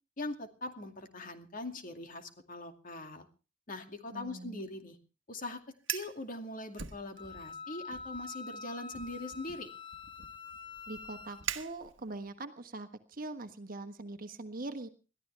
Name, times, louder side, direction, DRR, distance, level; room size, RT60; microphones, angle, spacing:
voice 1, 0.2-3.3 3.7-5.0 5.3-5.6 5.9-9.7, left 2 dB, 45° left, 7 dB, 2.4 m, -42 dB
voice 2, 4.1-4.7 10.9-14.9, right 2 dB, 45° right, 9 dB, 1.4 m, -42 dB
Fire, 5.7-6.2 6.7-7.5 7.9-8.2 8.9-12.3, right 9 dB, 80° right, 1.4 m, -42 dB
Wind instrument woodwind instrument, 7.2-11.4, left 4 dB, 25° left, 0.9 m, -46 dB
21.5 x 14.0 x 3.4 m, 0.34 s
head